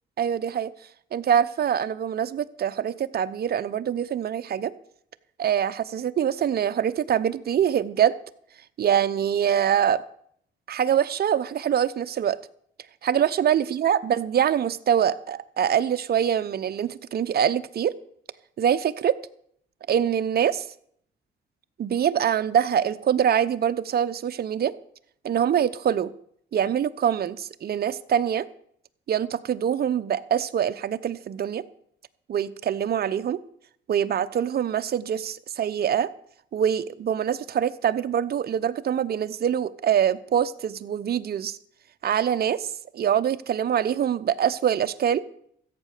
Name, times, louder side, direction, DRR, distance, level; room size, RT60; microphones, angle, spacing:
voice 1, 0.2-0.7 1.1-4.7 5.4-8.2 8.8-10.0 10.7-12.4 13.0-18.0 18.6-19.2 19.9-20.7 21.8-24.7 25.2-26.1 26.5-28.5 29.1-31.6 32.3-33.4 33.9-36.1 36.5-41.6 42.0-45.2, right 9 dB, 50° right, 11 dB, 0.8 m, -24 dB
14.0 x 8.6 x 6.6 m, 0.65 s
cardioid pair, 90°, 20 cm